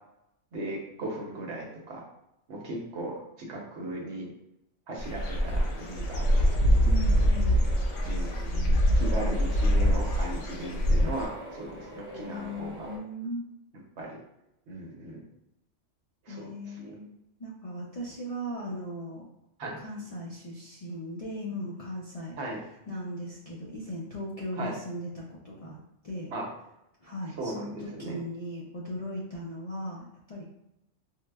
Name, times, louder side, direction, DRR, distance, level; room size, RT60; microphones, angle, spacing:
voice 1, 0.5-2.0 2.5-4.3 4.9-6.6 8.0-8.3 8.7-12.9 14.0-14.2 14.7-15.2 16.2-17.0 19.6-19.8 22.4-22.6 24.6-24.8 26.3-26.5 27.4-28.2, right 1 dB, 70° right, -1 dB, 1.0 m, -37 dB
Dog / Bird, 5.0-11.3, equal, 75° left, 0.9 m, -24 dB
sound 1, 5.2-13.0, equal, 10° right, 0.8 m, -44 dB
voice 2, 6.8-7.6 8.5-9.5 12.2-13.4 16.3-17.0 17.4-19.3 19.8-22.3 22.9-25.8 26.0-26.3 27.0-30.4, equal, 50° left, -6 dB, 0.4 m, -38 dB
4.5 x 2.0 x 2.2 m, 0.84 s
omnidirectional pair, 1.3 m